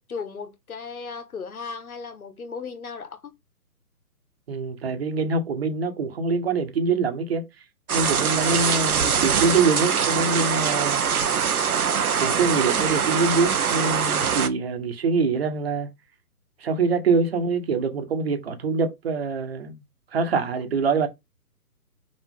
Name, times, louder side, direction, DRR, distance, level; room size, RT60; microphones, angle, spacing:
voice 1, 0.1-3.3, left 5 dB, 65° left, 1.7 m, -36 dB
voice 2, 4.5-7.5 7.9-11.0 12.2-15.9 16.6-19.8 20.1-21.1, right 4 dB, 40° right, 1.5 m, -24 dB
sound 1, 7.9-14.5, right 7 dB, 65° right, 1.1 m, -23 dB
5.3 x 4.9 x 3.8 m
figure-of-eight pair, 145°, 47 cm